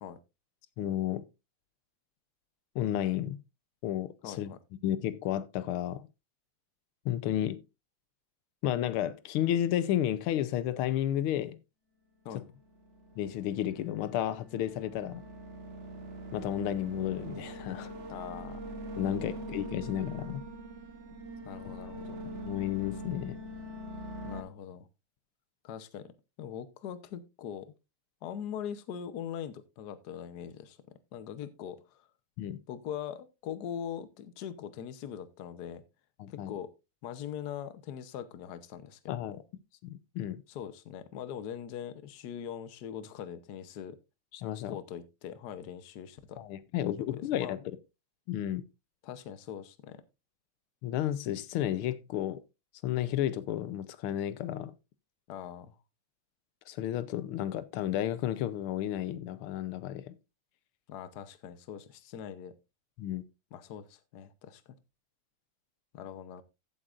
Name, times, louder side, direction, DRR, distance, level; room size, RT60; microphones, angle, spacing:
voice 1, 0.8-1.2 2.7-3.4 3.8-4.5 4.8-6.1 7.0-7.6 8.6-11.6 12.3-12.4 13.2-15.2 16.3-17.9 19.0-20.4 22.4-23.4 32.4-32.6 36.2-36.5 39.1-39.4 39.8-40.4 44.3-44.8 46.4-47.6 48.3-48.6 50.8-52.4 52.8-54.7 56.7-60.2 63.0-63.2, left 11 dB, 85° left, 1.6 m, -32 dB
voice 2, 4.2-4.6 12.2-12.5 18.1-18.7 19.0-19.3 21.4-22.2 24.2-24.9 25.6-26.1 26.4-27.7 28.2-30.8 31.1-32.1 32.7-35.8 36.3-36.7 37.0-39.4 40.5-44.0 44.7-46.4 47.0-47.5 49.0-50.0 55.3-55.8 60.9-62.5 63.5-64.8 65.9-66.4, left 9 dB, 55° left, 1.3 m, -42 dB
sound 1, 12.6-24.4, right 1 dB, 40° right, 1.4 m, -43 dB
15.5 x 8.0 x 2.5 m
omnidirectional pair, 2.3 m